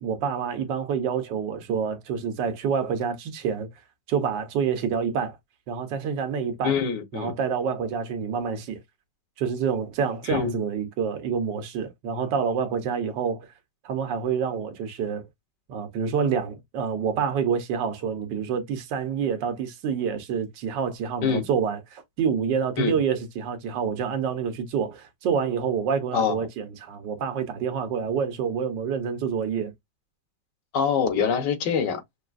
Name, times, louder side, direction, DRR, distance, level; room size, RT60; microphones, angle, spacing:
voice 1, 0.0-3.7 4.1-5.4 5.7-6.8 7.1-8.8 9.4-13.5 13.8-15.3 15.7-29.7, right 6 dB, 80° right, 1.6 m, -27 dB
voice 2, 6.6-7.3 10.2-10.6 21.2-21.5 22.8-23.0 26.1-26.4 30.7-32.0, left 7 dB, 75° left, 1.7 m, -25 dB
5.8 x 2.4 x 2.5 m
omnidirectional pair, 1.9 m